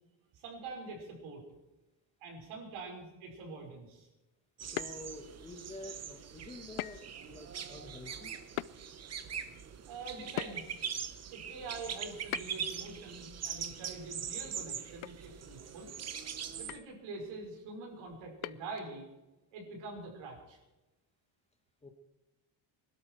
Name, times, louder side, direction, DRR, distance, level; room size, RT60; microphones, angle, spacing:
voice 1, 0.3-1.4 2.2-4.1 9.9-10.7 11.3-15.9 16.6-19.1 19.5-20.6, right 3 dB, 75° right, 1 dB, 5.3 m, -45 dB
voice 2, 4.6-8.3 21.8-21.9, left 2 dB, 15° left, 5 dB, 1.3 m, -48 dB
sound 1, 4.6-16.8, right 7 dB, 30° right, 1.0 m, -42 dB
sound 2, 4.8-5.4 6.8-7.2 7.5-7.6 8.6-8.8 10.4-10.9 12.3-12.8 14.5-14.6 15.0-15.2 15.5-15.6 16.7-17.0 18.4-18.9, left 18 dB, 75° left, 0.6 m, -40 dB
23.5 x 12.5 x 4.6 m, 1.0 s
cardioid pair, 165°, 49 cm